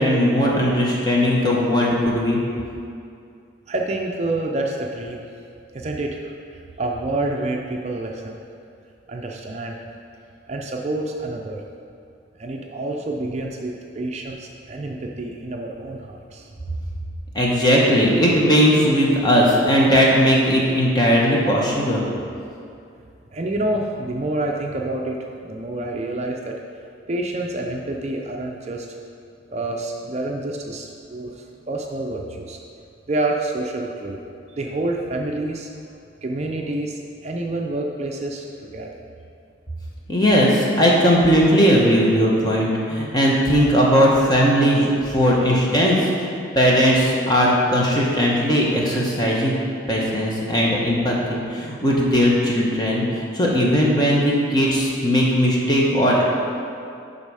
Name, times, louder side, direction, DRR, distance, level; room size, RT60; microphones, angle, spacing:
voice 1, 0.0-2.4 17.3-22.0 40.1-46.3 46.5-49.5 49.9-56.2, equal, 20° left, -4 dB, 1.1 m, -18 dB
voice 2, 3.7-5.2 5.7-8.4 9.1-9.8 10.5-11.6 12.4-16.5 23.3-25.2 25.4-26.5 27.1-29.0 29.5-32.6 33.1-34.2 34.5-35.7 36.2-38.4 38.7-38.9, right 2 dB, 35° right, 1 dB, 0.5 m, -28 dB
11.0 x 4.1 x 4.8 m, 2.4 s
head